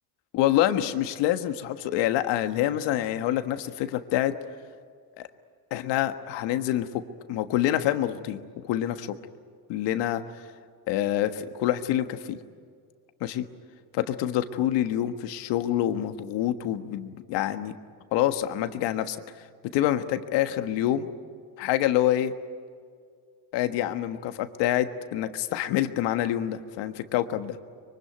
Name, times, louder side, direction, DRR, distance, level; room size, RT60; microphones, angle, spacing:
voice 1, 0.3-4.3 5.2-5.3 5.7-7.0 7.3-9.2 9.7-10.2 10.9-12.4 13.2-13.5 13.9-17.7 18.1-19.5 19.7-21.1 21.6-22.3 23.5-27.6, left 12 dB, 85° left, 9 dB, 1.6 m, -26 dB
25.0 x 24.0 x 9.3 m, 2.1 s
cardioid pair, 115°, 42 cm